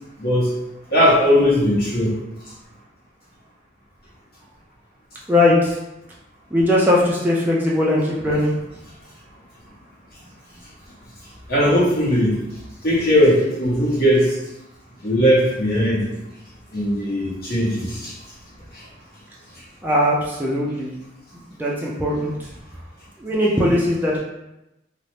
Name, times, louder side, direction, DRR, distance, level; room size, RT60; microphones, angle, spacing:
voice 1, 0.2-0.5 0.9-2.1 11.5-12.4 12.8-14.3 15.0-16.1 16.7-18.1, equal, 55° left, -6 dB, 1.0 m, -18 dB
voice 2, 5.3-5.8 6.5-8.5 19.8-20.9 21.6-22.3 23.2-24.2, left 1 dB, 10° right, -5 dB, 0.3 m, -19 dB
2.6 x 2.1 x 3.1 m, 0.93 s
head